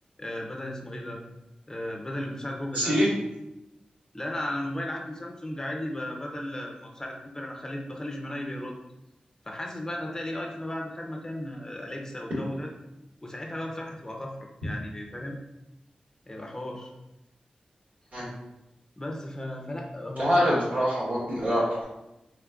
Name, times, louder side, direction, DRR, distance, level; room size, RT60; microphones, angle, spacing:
voice 1, 0.2-1.2 1.7-2.9 4.1-8.8 9.5-12.7 13.2-14.3 14.6-15.4 16.3-16.9 19.0-20.6, left 1 dB, 20° left, 1 dB, 0.5 m, -35 dB
voice 2, 2.7-3.1 18.1-18.3 20.2-21.8, equal, 80° right, -7 dB, 1.5 m, -24 dB
3.6 x 3.2 x 2.3 m, 0.93 s
wide cardioid pair, 80°, 3 cm